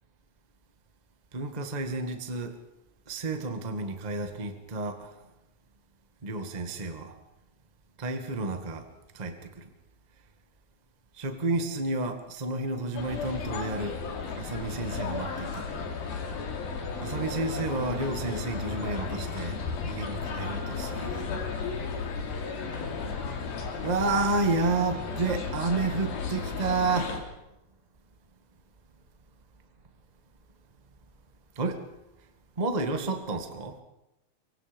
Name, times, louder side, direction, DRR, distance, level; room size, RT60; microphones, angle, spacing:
voice 1, 1.3-2.5 3.1-5.2 6.2-7.2 8.0-8.9 9.1-9.7 11.2-14.0 14.4-15.7 17.0-19.6 19.9-21.2 23.8-27.1 31.5-31.8 32.6-33.8, right 3 dB, 35° right, 7 dB, 0.6 m, -30 dB
sound 1, 13.0-27.2, left 5 dB, 75° left, 4.5 m, -34 dB
24.5 x 24.0 x 5.3 m, 0.92 s
omnidirectional pair, 4.4 m